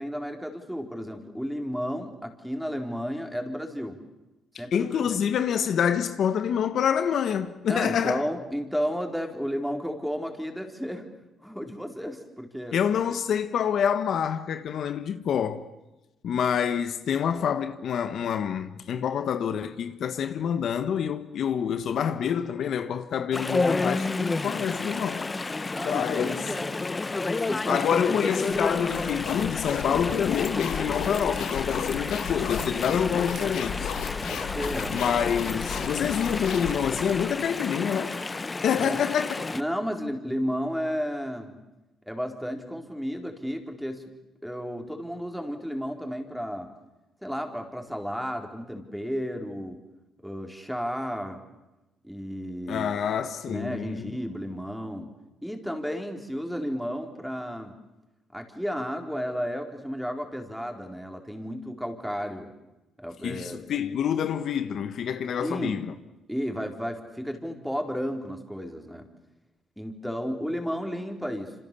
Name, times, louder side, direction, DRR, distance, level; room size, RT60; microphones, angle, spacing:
voice 1, 0.0-4.0 4.6-5.0 7.7-11.1 11.4-12.8 25.7-26.7 27.5-28.0 34.2-35.0 38.8-39.0 39.5-41.6 42.1-44.0 44.4-46.7 47.2-49.8 50.2-51.4 52.0-52.9 53.5-55.1 55.4-57.7 58.3-62.5 63.0-63.6 65.4-65.8 66.3-69.1 69.8-71.5, equal, ahead, 4.4 m, -33 dB
voice 2, 4.7-8.2 12.7-15.7 16.2-25.2 25.8-26.5 27.7-33.9 34.9-38.2 38.6-39.3 52.7-54.1 63.2-65.9, left 8 dB, 65° left, 1.4 m, -27 dB
Chatter / Stream, 23.3-39.6, left 3 dB, 25° left, 1.1 m, -31 dB
sound 1, 27.3-29.9 30.1-31.7 32.1-32.7 33.3-33.5 34.2-38.4, right 6 dB, 60° right, 4.7 m, -53 dB
sound 2, 28.5-37.3, left 8 dB, 80° left, 2.0 m, -34 dB
27.5 x 26.5 x 7.0 m
cardioid pair, 90°, 0 cm